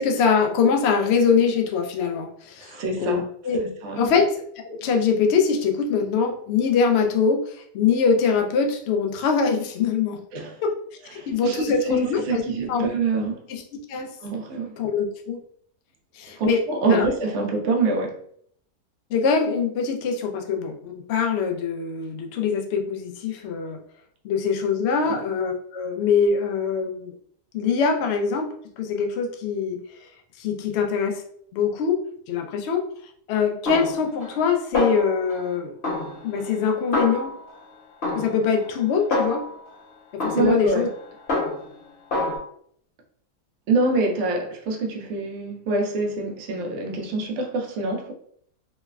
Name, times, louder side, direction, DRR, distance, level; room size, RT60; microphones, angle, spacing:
voice 1, 0.0-3.6 4.0-10.2 10.6-10.7 11.1-12.4 12.7-12.9 13.5-13.6 13.9-14.1 14.8-15.4 16.1-16.6 16.9-17.1 19.1-23.8 24.2-27.1 27.5-30.1 30.4-31.2 31.5-32.0 32.3-32.9 33.3-35.8 36.2-37.3 38.1-39.4 40.2-40.9, left 5 dB, 80° left, 3 dB, 0.6 m, -23 dB
voice 2, 2.6-3.3 3.5-4.1 10.3-10.6 11.1-13.4 14.2-14.8 16.4-18.2 25.0-25.1 40.3-40.9 43.7-48.1, right 3 dB, 65° right, 0 dB, 0.8 m, -25 dB
Snare drum, 33.7-34.5 34.7-35.5 35.8-37.6 38.0-39.7 40.2-41.8 42.1-42.4, left 2 dB, 45° left, 1.0 m, -28 dB
3.1 x 2.0 x 2.3 m, 0.63 s
omnidirectional pair, 1.6 m